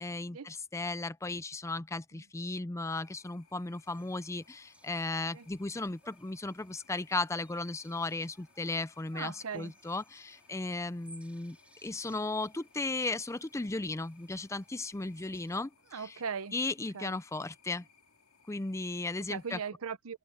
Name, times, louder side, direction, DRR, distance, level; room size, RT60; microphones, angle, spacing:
voice 1, 0.0-11.6 11.8-16.1 16.5-17.8 18.5-19.6, left 2 dB, 15° left, 0.5 m, -36 dB
sound 1, 3.0-19.7, left 5 dB, 75° left, 3.2 m, -65 dB
sound 2, 3.8-15.6, right 1 dB, 5° right, 4.4 m, -63 dB
voice 2, 9.1-9.7 15.9-16.5 16.9-17.2 19.3-20.2, right 6 dB, 75° right, 0.8 m, -39 dB
open air
head